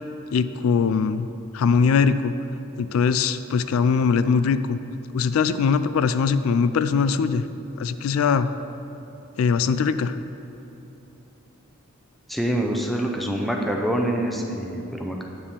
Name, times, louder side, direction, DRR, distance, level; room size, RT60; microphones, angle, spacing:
voice 1, 0.3-1.3 1.5-2.3 2.8-4.8 5.1-7.4 7.8-8.5 9.4-10.2, left 5 dB, 80° left, 12 dB, 0.3 m, -21 dB
voice 2, 12.3-15.2, right 1 dB, ahead, 1 dB, 0.5 m, -25 dB
9.5 x 3.5 x 6.7 m, 3.0 s
head